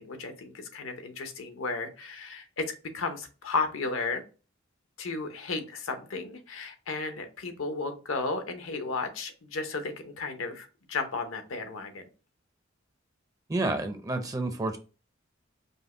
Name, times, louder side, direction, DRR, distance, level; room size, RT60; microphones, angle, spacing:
voice 1, 0.0-4.2 5.0-12.0, left 3 dB, 85° left, 7 dB, 0.8 m, -34 dB
voice 2, 13.5-14.8, right 2 dB, 20° right, 6 dB, 0.4 m, -29 dB
5.2 x 2.1 x 3.7 m, 0.34 s
head